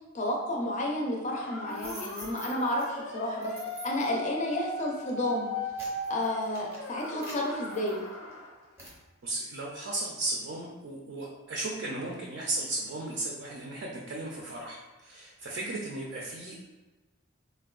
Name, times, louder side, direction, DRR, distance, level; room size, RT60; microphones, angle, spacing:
voice 1, 0.1-3.5 3.8-5.5 6.1-8.0, left 1 dB, 35° left, 0 dB, 0.4 m, -31 dB
sound 1, 1.3-8.5, left 1 dB, 90° left, 0.5 m, -38 dB
sound 2, 1.7-2.8 3.4-4.2 4.8-5.0 5.5-8.3 8.8-9.0, right 1 dB, 15° right, 0.6 m, -46 dB
voice 2, 9.2-16.7, right 2 dB, 55° right, -3 dB, 0.4 m, -35 dB
3.4 x 2.2 x 2.3 m, 1.2 s
head